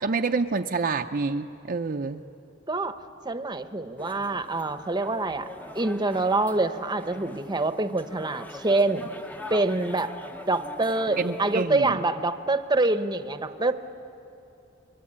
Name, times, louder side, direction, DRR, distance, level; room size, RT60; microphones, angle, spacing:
voice 1, 0.0-2.2 11.2-12.0, right 4 dB, 45° right, 4 dB, 0.6 m, -27 dB
voice 2, 3.2-5.5 5.7-9.1 9.5-10.1 10.5-13.7, right 2 dB, 20° right, 9 dB, 0.9 m, -25 dB
sound 1, 4.0-11.6, left 1 dB, 10° left, 0.8 m, -43 dB
29.5 x 23.5 x 8.7 m, 2.8 s
head